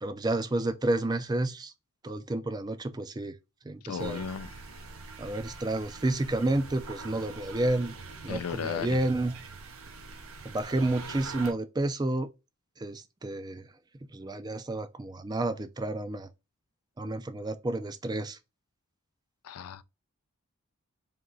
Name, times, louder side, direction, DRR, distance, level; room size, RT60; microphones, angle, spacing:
voice 1, 0.0-1.7 2.0-3.3 3.7-4.2 5.2-7.9 8.2-9.3 10.4-12.3 12.8-13.6 14.1-16.3 17.0-18.4, right 2 dB, 20° right, 0.4 m, -30 dB
voice 2, 3.8-4.5 8.3-9.0 19.4-19.8, left 7 dB, 90° left, 0.4 m, -35 dB
sound 1, 4.0-11.5, right 4 dB, 70° right, 0.7 m, -44 dB
3.6 x 2.8 x 3.9 m
head